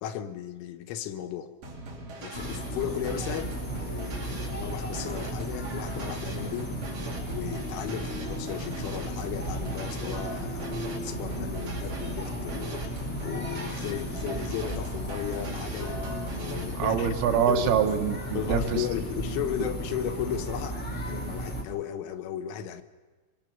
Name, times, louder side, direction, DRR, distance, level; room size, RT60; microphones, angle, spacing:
voice 1, 0.0-1.5 2.2-6.8 7.3-12.8 13.2-17.7 18.3-22.8, left 10 dB, 80° left, 3.4 m, -35 dB
sound 1, 1.6-16.8, right 3 dB, 55° right, 4.8 m, -41 dB
sound 2, 2.3-21.6, equal, 20° left, 1.9 m, -34 dB
voice 2, 16.8-18.8, right 8 dB, 85° right, 4.0 m, -25 dB
24.0 x 23.5 x 6.0 m
omnidirectional pair, 5.7 m